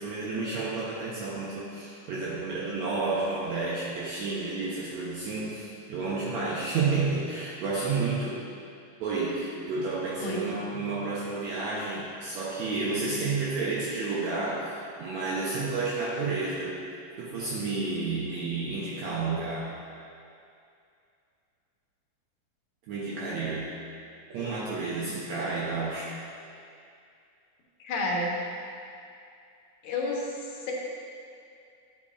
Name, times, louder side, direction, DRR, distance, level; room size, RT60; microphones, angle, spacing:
voice 1, 0.0-8.4 9.0-16.8 17.2-19.7 22.9-23.8 24.3-26.1, right 3 dB, 70° right, -6 dB, 1.9 m, -31 dB
voice 2, 27.8-28.3 29.8-30.7, left 2 dB, 75° left, -3 dB, 2.4 m, -30 dB
10.0 x 6.9 x 2.5 m, 2.5 s
omnidirectional pair, 3.6 m